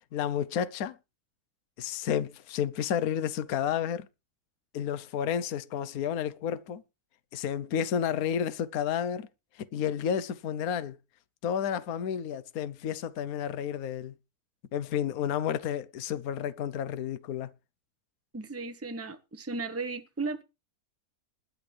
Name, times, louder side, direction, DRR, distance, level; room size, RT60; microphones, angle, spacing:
voice 1, 0.1-1.0 1.8-4.1 4.7-6.8 7.3-9.3 9.6-11.0 11.4-14.1 14.7-17.5, left 8 dB, 65° left, 1.2 m, -31 dB
voice 2, 18.3-20.4, right 3 dB, 10° right, 0.9 m, -35 dB
21.0 x 8.6 x 3.3 m
omnidirectional pair, 1.7 m